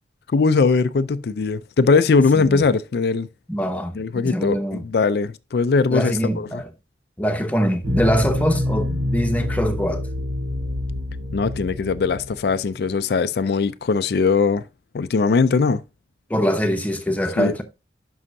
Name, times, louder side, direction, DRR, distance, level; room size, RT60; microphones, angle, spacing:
voice 1, 0.3-3.3 4.0-4.6 4.8-6.6 11.3-14.6 14.9-15.8 17.4-17.6, left 4 dB, 60° left, 0.4 m, -20 dB
voice 2, 2.3-2.7 3.5-4.9 5.9-6.7 7.2-10.1 16.3-17.6, equal, 10° left, 0.9 m, -23 dB
sound 1, 7.8-12.9, left 1 dB, 90° right, 1.7 m, -27 dB
11.0 x 5.5 x 2.6 m
head